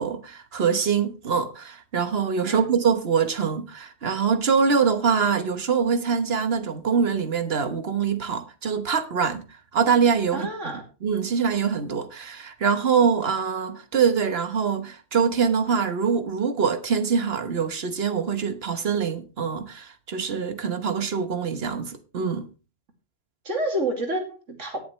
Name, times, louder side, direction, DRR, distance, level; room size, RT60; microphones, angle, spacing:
voice 1, 0.0-9.5 9.7-10.7 11.0-22.5, right 6 dB, 55° right, 1.4 m, -24 dB
voice 2, 10.3-10.8 23.4-24.8, right 1 dB, 75° right, 2.9 m, -28 dB
18.0 x 7.0 x 3.2 m
omnidirectional pair, 1.3 m